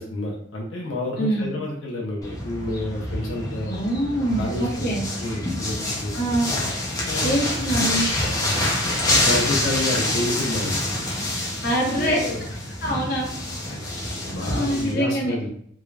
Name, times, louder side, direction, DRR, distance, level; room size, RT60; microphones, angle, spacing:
voice 1, 0.0-3.7 4.2-4.9 5.2-6.2 7.0-7.4 8.4-8.6 8.8-9.0 9.2-10.8 11.8-12.4 12.7-12.8 13.7-13.8 14.3-15.5, left 1 dB, 85° left, -3 dB, 0.8 m, -29 dB
sound 1, 2.2-14.9, left 1 dB, 20° left, 0.7 m, -26 dB
voice 2, 3.7-5.0 6.1-6.5 7.2-8.1 11.6-12.2 12.8-13.3 13.7-13.9 14.4-15.3, right 1 dB, 50° left, -2 dB, 1.0 m, -24 dB
3.6 x 2.3 x 3.3 m, 0.66 s
head